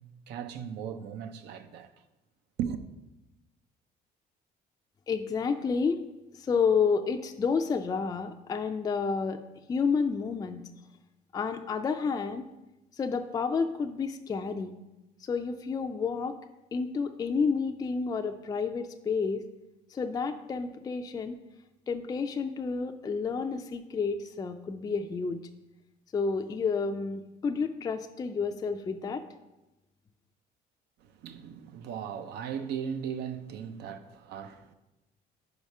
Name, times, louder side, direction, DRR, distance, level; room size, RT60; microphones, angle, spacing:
voice 1, 0.3-1.9 2.6-2.8 31.2-34.7, right 8 dB, 75° right, 0.6 m, -37 dB
voice 2, 5.1-6.0 6.4-9.4 9.7-10.6 11.3-12.4 13.0-14.7 15.2-16.4 16.7-19.4 19.9-21.4 21.9-25.4 26.1-29.2, left 5 dB, 20° left, 0.3 m, -30 dB
4.9 x 4.9 x 5.3 m
cardioid pair, 110°, 17 cm